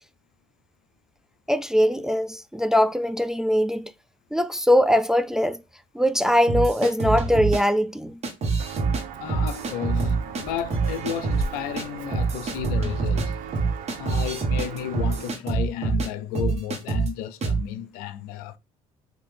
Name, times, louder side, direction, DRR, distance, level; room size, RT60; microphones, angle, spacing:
voice 1, 1.5-3.9 4.3-5.6 5.9-8.2, equal, 5° right, 0.3 m, -21 dB
sound 1, 6.5-7.6 8.2-9.0 9.3-10.4 10.7-11.4 11.8-11.9 12.1-16.1 16.3-17.1 17.4-17.6, right 4 dB, 50° right, 1.3 m, -25 dB
Walk footsteps, 8.6-15.3, right 6 dB, 70° right, 0.5 m, -37 dB
voice 2, 9.2-13.4 14.0-18.6, left 10 dB, 85° left, 0.4 m, -33 dB
3.6 x 2.7 x 3.3 m
supercardioid pair, 75°, 15 cm